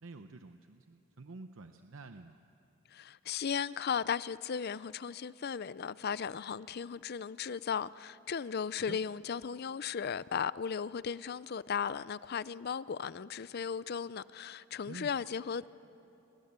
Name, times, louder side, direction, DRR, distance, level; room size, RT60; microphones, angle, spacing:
voice 1, 0.0-2.4 8.8-9.0 14.9-15.1, right 3 dB, 85° right, 0.8 m, -49 dB
voice 2, 2.9-15.7, left 7 dB, 55° left, 0.5 m, -36 dB
28.5 x 23.5 x 8.2 m
head